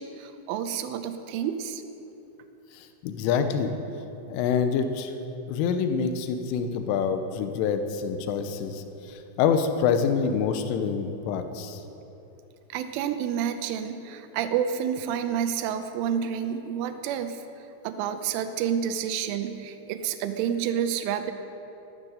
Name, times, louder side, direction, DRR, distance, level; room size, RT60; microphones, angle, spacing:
voice 1, 0.0-1.8 12.7-17.4 17.8-21.3, right 8 dB, 90° right, 8 dB, 3.2 m, -29 dB
voice 2, 3.0-3.7 4.3-5.1 5.5-8.8 9.4-11.8, left 6 dB, 85° left, 8 dB, 3.4 m, -26 dB
14.5 x 12.5 x 6.6 m, 3.0 s
omnidirectional pair, 5.7 m